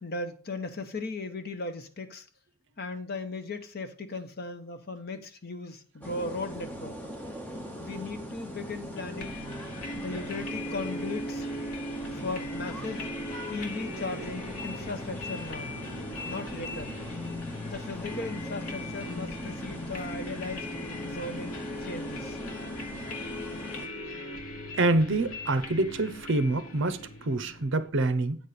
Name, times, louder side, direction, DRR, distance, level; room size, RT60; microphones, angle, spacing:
voice 1, 0.0-2.3 2.8-7.0 7.8-9.3 10.0-11.5 12.1-13.1 13.5-15.7 16.2-16.9 17.6-20.7 21.0-22.4, left 3 dB, 45° left, 0.9 m, -37 dB
sound 1, 6.0-23.9, equal, 5° left, 0.9 m, -41 dB
sound 2, 9.2-27.9, left 1 dB, 70° left, 1.4 m, -39 dB
voice 2, 24.8-28.4, right 2 dB, 55° right, 0.7 m, -26 dB
8.9 x 4.3 x 6.7 m
head